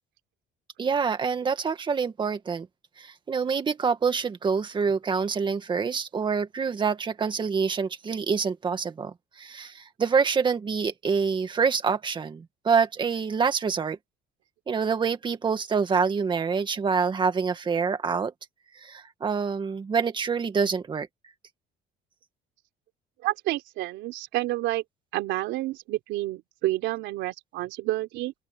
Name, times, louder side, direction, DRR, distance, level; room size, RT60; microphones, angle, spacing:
voice 1, 0.8-2.7 3.0-14.0 14.7-18.3 18.8-21.1, right 5 dB, 25° right, 1.9 m, -26 dB
voice 2, 23.2-24.8 25.1-28.3, right 17 dB, 80° right, 3.6 m, -29 dB
open air
cardioid pair, 150°, 19 cm